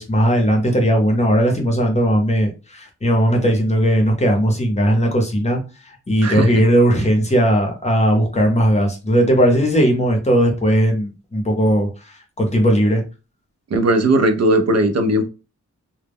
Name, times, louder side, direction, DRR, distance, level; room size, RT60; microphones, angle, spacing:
voice 1, 0.0-5.6 6.1-11.9 12.4-13.0, equal, 20° left, 0.6 m, -17 dB
voice 2, 6.2-6.6 13.7-15.2, right 1 dB, 55° right, 0.4 m, -17 dB
2.0 x 2.0 x 3.4 m
wide cardioid pair, 125°, 31 cm